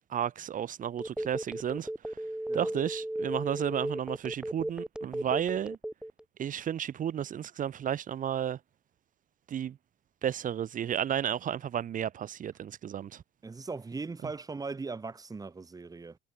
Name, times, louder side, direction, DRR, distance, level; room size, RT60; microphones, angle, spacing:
voice 1, 0.1-2.2 2.5-5.8 6.4-8.6 9.5-9.8 10.2-13.2, right 9 dB, 50° right, 4.0 m, -33 dB
Telephone, 1.0-6.2, right 1 dB, 5° right, 2.3 m, -35 dB
voice 2, 13.4-16.2, right 4 dB, 20° right, 3.3 m, -39 dB
cardioid pair, 110°, 17 cm